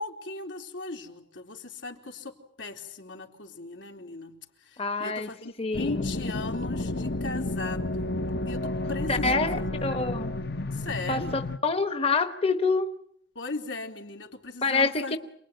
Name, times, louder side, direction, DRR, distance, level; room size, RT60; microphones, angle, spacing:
voice 1, 0.0-4.4 4.6-8.2 8.5-10.2 10.7-11.4 13.4-15.2, left 3 dB, 85° left, 3 dB, 3.8 m, -38 dB
voice 2, 4.8-5.3 5.6-6.1 9.1-10.3 11.1-12.9 14.6-15.2, left 3 dB, 30° left, 8 dB, 1.1 m, -26 dB
sound 1, 5.7-11.6, left 2 dB, 60° left, 1.1 m, -31 dB
28.0 x 21.0 x 9.3 m, 0.70 s
head